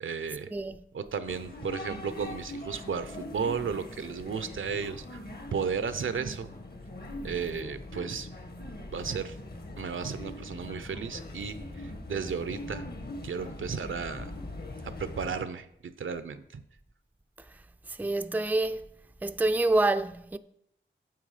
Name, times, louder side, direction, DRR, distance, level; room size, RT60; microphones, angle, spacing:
voice 1, 0.0-0.5 0.9-5.2 5.5-6.5 7.2-8.3 8.9-9.4 9.8-12.9 13.2-14.3 14.8-15.7 16.0-16.4, right 6 dB, 85° right, 0.7 m, -34 dB
voice 2, 0.5-0.8 17.9-18.9 19.2-20.4, right 2 dB, 10° right, 0.4 m, -27 dB
sound 1, 1.3-15.4, left 2 dB, 50° left, 1.4 m, -42 dB
9.2 x 7.2 x 4.9 m
wide cardioid pair, 85°, 20 cm